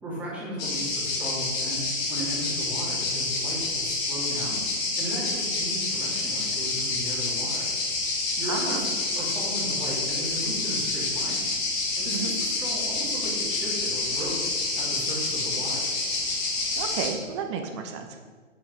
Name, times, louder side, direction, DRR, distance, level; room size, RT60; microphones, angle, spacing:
voice 1, 0.0-4.6 5.0-7.7 8.4-8.9 9.1-11.5 11.9-15.9, right 1 dB, 5° right, -9 dB, 2.8 m, -36 dB
sound 1, 0.6-17.1, left 3 dB, 25° left, 1.5 m, -28 dB
voice 2, 8.5-8.8 12.1-12.3 16.8-18.2, right 6 dB, 20° right, 4 dB, 0.7 m, -32 dB
8.0 x 6.8 x 4.6 m, 1.5 s
figure-of-eight pair, 135°, 39 cm